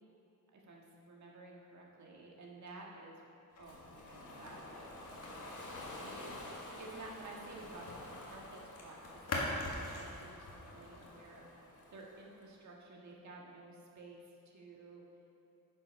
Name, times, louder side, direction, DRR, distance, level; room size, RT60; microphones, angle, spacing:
voice 1, 0.5-3.3 3.6-7.9 8.2-11.5 11.9-15.0, right 2 dB, 60° right, -2 dB, 1.7 m, -53 dB
sound 1, 3.5-8.0 8.3-11.0, left 2 dB, 50° left, 1.8 m, -44 dB
Ocean, 3.6-12.5, left 1 dB, 70° left, 2.3 m, -50 dB
11.0 x 6.9 x 5.3 m, 2.8 s
wide cardioid pair, 165°, 32 cm